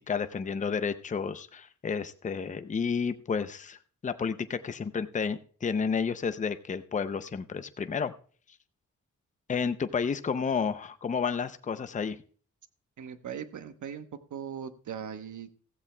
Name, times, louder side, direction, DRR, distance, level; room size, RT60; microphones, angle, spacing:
voice 1, 0.1-3.8 4.0-8.1 9.5-12.2, left 6 dB, 25° left, 11 dB, 0.5 m, -31 dB
voice 2, 13.0-15.5, right 8 dB, 75° right, 10 dB, 1.0 m, -39 dB
15.5 x 15.0 x 2.2 m, 0.43 s
wide cardioid pair, 180°, 30 cm